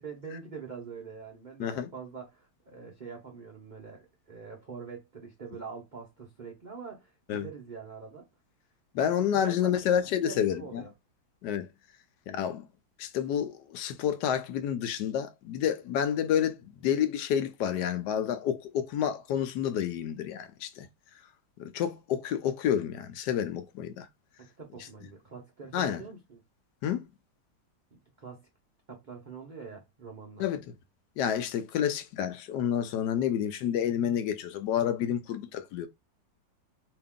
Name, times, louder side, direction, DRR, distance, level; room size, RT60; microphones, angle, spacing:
voice 1, 0.0-8.3 9.0-9.7 10.2-10.9 24.4-26.4 27.9-28.5 28.9-30.5, right 5 dB, 85° right, 0.4 m, -44 dB
voice 2, 8.9-10.8 11.4-11.7 12.3-12.7 13.0-20.9 21.6-24.1 25.7-26.0 26.8-27.0 30.4-30.7 31.2-35.9, left 9 dB, 75° left, 1.1 m, -29 dB
2.9 x 2.8 x 3.5 m
omnidirectional pair, 2.0 m